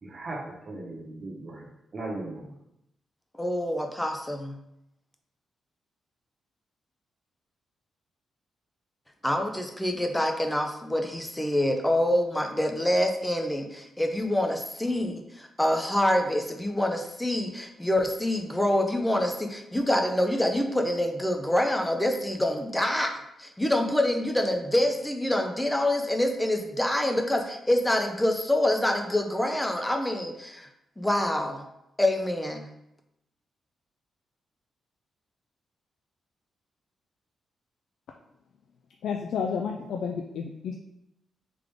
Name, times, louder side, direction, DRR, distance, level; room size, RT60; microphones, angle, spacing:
voice 1, 0.0-1.7 1.9-2.5, right 2 dB, 35° right, -3 dB, 1.0 m, -37 dB
voice 2, 3.4-4.6 9.2-30.7 31.0-31.6 32.0-32.7, left 1 dB, 10° left, 4 dB, 0.5 m, -26 dB
voice 3, 39.0-40.7, left 6 dB, 80° left, 2 dB, 0.3 m, -31 dB
3.7 x 3.3 x 3.5 m, 0.83 s
cardioid pair, 120°, 0 cm